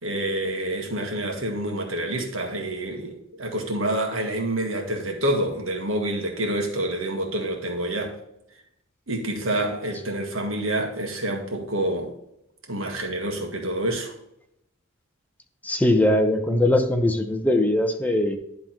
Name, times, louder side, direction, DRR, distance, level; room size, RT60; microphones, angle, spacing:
voice 1, 0.0-8.2 9.1-12.1 12.7-14.1, right 1 dB, 85° right, 1.8 m, -27 dB
voice 2, 15.6-18.4, left 1 dB, 10° left, 0.7 m, -21 dB
11.0 x 3.7 x 4.3 m
head